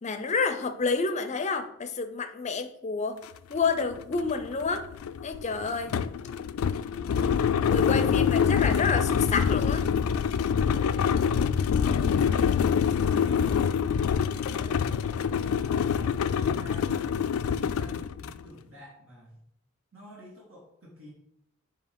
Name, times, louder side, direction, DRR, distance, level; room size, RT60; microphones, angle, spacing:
voice 1, 0.0-3.2 3.5-4.9 5.2-5.9 7.6-9.9, left 4 dB, 35° left, 9 dB, 0.5 m, -29 dB
sound 1, 3.2-3.3 3.7-18.4, left 7 dB, 90° left, 0.3 m, -26 dB
voice 2, 6.9-7.6 13.0-15.9 16.4-17.2 17.4-19.4 19.9-21.1, equal, 70° right, -4 dB, 1.7 m, -49 dB
7.0 x 2.8 x 5.1 m, 0.75 s
head